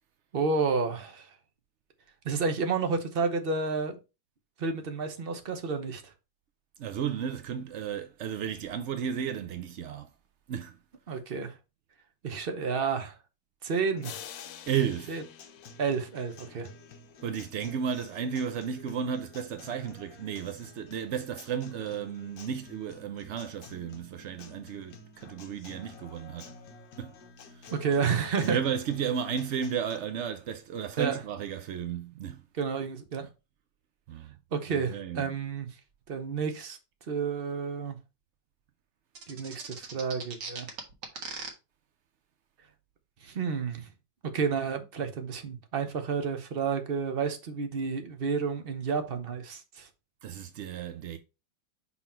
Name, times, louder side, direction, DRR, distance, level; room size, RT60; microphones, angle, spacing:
voice 1, 0.3-1.3 2.2-4.0 4.6-6.1 11.1-11.5 12.2-13.2 13.6-14.2 15.1-15.2 15.8-16.7 27.7-28.6 31.0-31.2 32.6-33.3 34.5-35.7 36.1-36.8 37.1-38.0 39.3-40.7 43.2-43.9 44.3-49.9, right 5 dB, 40° right, 0.8 m, -30 dB
voice 2, 6.8-10.1 10.5-10.8 14.7-15.2 17.2-26.5 27.0-27.2 27.5-27.7 28.4-32.4 34.1-34.3 34.7-35.3 50.2-51.2, right 8 dB, 80° right, 0.6 m, -33 dB
sound 1, 14.0-16.7, left 10 dB, 80° left, 1.3 m, -46 dB
Acoustic guitar, 14.0-30.0, left 3 dB, 60° left, 1.3 m, -51 dB
sound 2, 39.2-41.5, right 4 dB, 65° right, 2.0 m, -39 dB
5.7 x 4.1 x 4.3 m
omnidirectional pair, 2.0 m